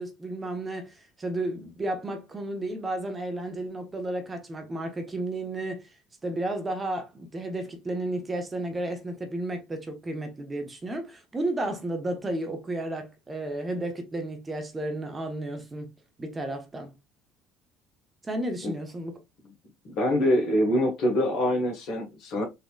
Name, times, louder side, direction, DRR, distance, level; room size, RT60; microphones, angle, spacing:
voice 1, 0.0-5.9 6.2-15.9 16.2-16.9 18.2-19.2, right 1 dB, 25° right, 1.0 m, -32 dB
voice 2, 19.8-22.4, left 1 dB, 55° left, 1.3 m, -25 dB
4.1 x 2.8 x 2.3 m
figure-of-eight pair, 55°, 0 cm